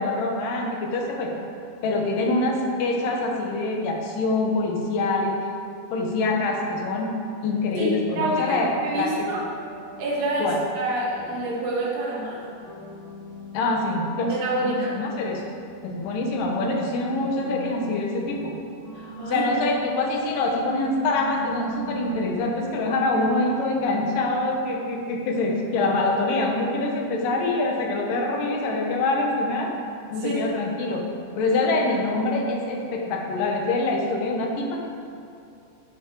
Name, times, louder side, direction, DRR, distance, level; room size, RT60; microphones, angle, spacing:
voice 1, 0.0-1.3 1.8-5.4 5.9-7.1 7.4-9.3 10.4-10.6 13.5-14.3 14.6-15.5 15.8-18.6 19.3-29.7 30.1-31.0 31.4-34.9, left 2 dB, 80° left, 1 dB, 2.8 m, -25 dB
sound 1, 5.5-7.0 8.0-24.3, equal, 55° left, 1.4 m, -42 dB
voice 2, 8.2-8.6 8.8-9.4 10.0-12.4 14.4-15.0 18.9-19.4 30.2-30.4, right 2 dB, 80° right, -7 dB, 3.7 m, -27 dB
10.5 x 7.1 x 4.6 m, 2.6 s
omnidirectional pair, 3.9 m